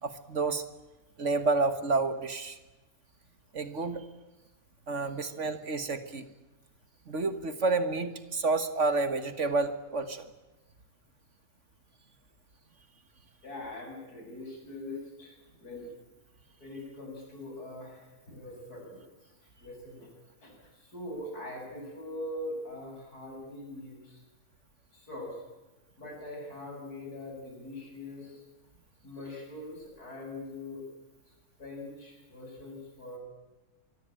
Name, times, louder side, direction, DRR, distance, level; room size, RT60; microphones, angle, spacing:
voice 1, 0.0-0.6 1.2-2.6 3.5-4.0 4.9-6.2 7.1-10.3, right 3 dB, 50° right, 11 dB, 1.8 m, -29 dB
voice 2, 13.4-15.9 16.6-19.1 19.6-20.1 20.4-24.2 24.9-25.4 26.0-28.4 29.0-30.8 31.6-33.2, left 1 dB, 85° left, 1 dB, 8.3 m, -42 dB
24.5 x 24.0 x 8.9 m, 1.1 s
omnidirectional pair, 1.6 m